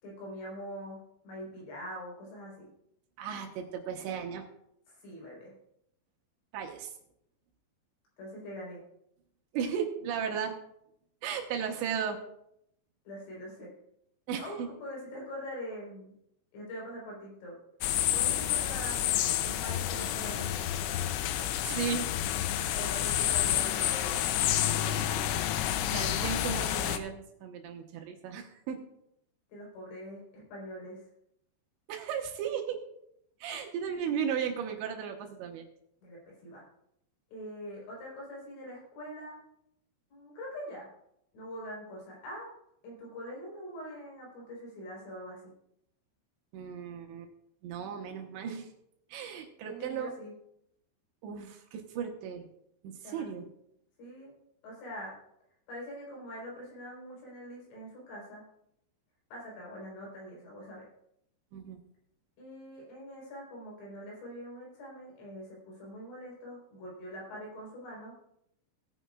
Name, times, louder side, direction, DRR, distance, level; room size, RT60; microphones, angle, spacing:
voice 1, 0.0-2.7 4.9-5.5 8.2-8.8 10.2-10.3 13.1-13.7 14.4-16.1 16.5-17.5 18.1-20.5 22.7-25.2 29.5-31.0 36.0-36.6 37.3-39.4 40.1-40.9 41.3-42.5 42.8-45.5 49.7-50.3 53.0-53.5 54.0-54.3 54.6-55.1 55.7-58.4 59.3-60.9 62.4-68.2, equal, 75° left, -3 dB, 6.6 m, -43 dB
voice 2, 3.2-4.4 6.5-6.9 9.5-10.5 11.2-12.2 14.3-14.7 21.4-22.1 25.9-28.8 31.9-32.8 33.4-35.7 46.5-47.3 47.6-48.7 49.1-50.1 51.2-52.5 52.8-53.5 61.5-61.8, right 7 dB, 75° right, 3 dB, 3.2 m, -35 dB
sound 1, 17.8-27.0, left 12 dB, 90° left, 3.2 m, -29 dB
18.0 x 9.8 x 2.4 m, 0.76 s
omnidirectional pair, 5.5 m